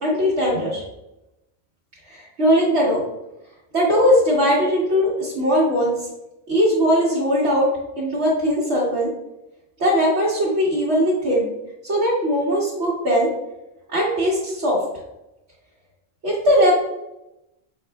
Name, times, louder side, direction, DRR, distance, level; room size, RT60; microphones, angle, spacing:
voice 1, 0.0-0.8 2.1-3.0 3.7-6.1 6.5-7.7 8.0-9.1 9.8-11.5 11.8-13.3 13.9-14.8 16.2-16.7, equal, 65° right, -7 dB, 1.3 m, -19 dB
5.5 x 4.1 x 2.2 m, 0.93 s
omnidirectional pair, 1.2 m